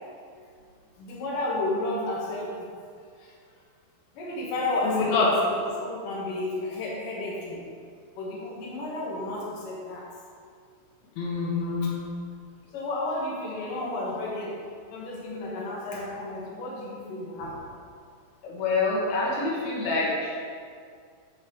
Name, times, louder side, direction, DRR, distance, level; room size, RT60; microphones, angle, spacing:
voice 1, 1.0-2.5 3.2-3.3 4.2-7.6 8.2-10.0 12.7-14.6 14.9-17.7, left 2 dB, 65° left, -5 dB, 3.3 m, -32 dB
voice 2, 4.8-5.3 11.2-12.1 15.4-15.5 18.4-20.4, left 3 dB, 85° left, -4 dB, 3.4 m, -26 dB
10.5 x 4.7 x 7.0 m, 2.2 s
omnidirectional pair, 4.3 m